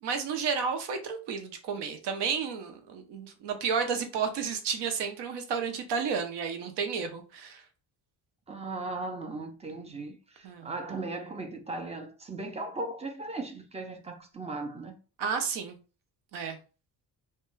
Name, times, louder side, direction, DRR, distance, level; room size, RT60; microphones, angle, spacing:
voice 1, 0.0-7.6 10.4-10.7 15.2-15.8 16.3-16.6, right 6 dB, 75° right, 0.7 m, -32 dB
voice 2, 8.5-14.9, right 2 dB, 15° right, 0.3 m, -37 dB
2.2 x 2.2 x 3.0 m
cardioid pair, 130°, 42 cm